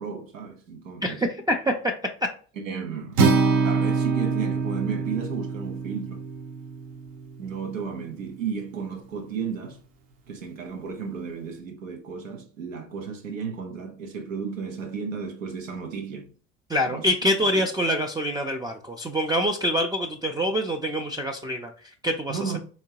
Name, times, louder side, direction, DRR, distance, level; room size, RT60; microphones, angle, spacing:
voice 1, 0.0-1.2 2.6-6.2 7.4-9.8 10.3-16.3 16.9-17.1 17.4-17.6 22.3-22.6, right 6 dB, 85° right, 0.9 m, -33 dB
voice 2, 1.0-1.7 16.7-22.4, equal, 10° right, 0.4 m, -25 dB
Acoustic guitar, 3.2-7.4, right 4 dB, 50° right, 0.9 m, -25 dB
3.6 x 3.0 x 2.8 m
hypercardioid pair, 65°, 38 cm